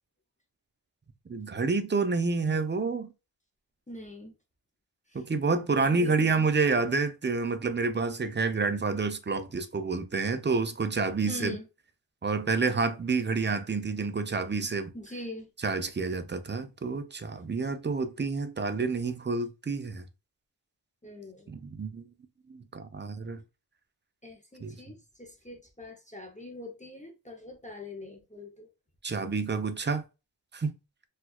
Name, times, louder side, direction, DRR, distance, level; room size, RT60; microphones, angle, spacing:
voice 1, 1.3-3.1 5.1-11.6 12.2-14.9 15.6-20.0 21.5-22.0 22.5-23.4 24.6-24.8 29.0-30.0 30.5-30.7, right 4 dB, 25° right, 0.4 m, -29 dB
voice 2, 3.9-4.3 5.1-5.2 5.9-6.5 11.3-11.7 14.9-15.5 21.0-21.5 24.2-28.7, left 1 dB, 15° left, 0.6 m, -43 dB
4.3 x 2.3 x 2.2 m
wide cardioid pair, 70°, 43 cm